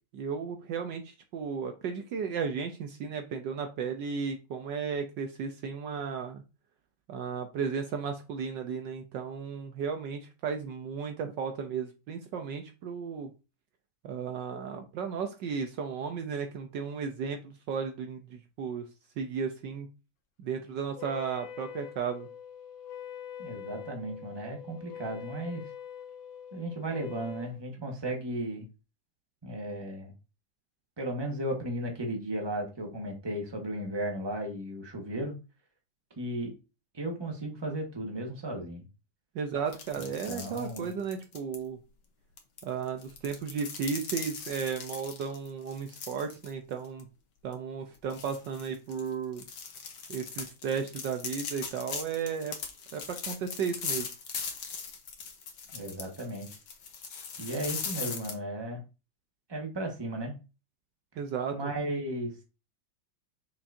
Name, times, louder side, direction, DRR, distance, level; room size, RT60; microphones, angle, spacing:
voice 1, 0.1-6.4 7.1-13.3 14.0-18.9 19.2-19.9 20.4-22.3 39.3-41.8 42.6-47.1 47.4-49.4 50.1-52.5 52.9-54.1 61.2-61.7, right 6 dB, 70° right, 6 dB, 1.3 m, -34 dB
Wind instrument woodwind instrument, 21.0-27.6, left 9 dB, 80° left, 1.6 m, -44 dB
voice 2, 23.4-25.6 26.5-28.7 29.4-30.1 31.0-35.3 36.2-36.5 36.9-38.8 40.3-40.9 55.7-56.5 57.4-58.8 59.5-60.3 61.5-62.3, right 1 dB, 15° right, 2 dB, 1.3 m, -35 dB
sound 1, 39.7-41.6 42.4-46.5 46.9-47.0 47.5-47.6 48.1-58.3, left 5 dB, 65° left, 1.8 m, -39 dB
6.2 x 6.1 x 2.7 m, 0.30 s
omnidirectional pair, 2.2 m